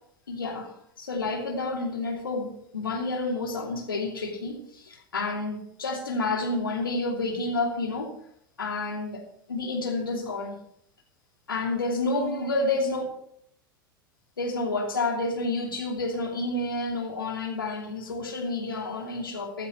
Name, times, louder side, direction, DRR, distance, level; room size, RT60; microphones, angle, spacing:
voice 1, 0.3-8.1 8.6-9.2 9.5-10.6 11.5-13.0 14.4-19.7, left 2 dB, 80° left, 2 dB, 2.8 m, -29 dB
16.0 x 12.5 x 3.1 m, 0.69 s
figure-of-eight pair, 85°, 11 cm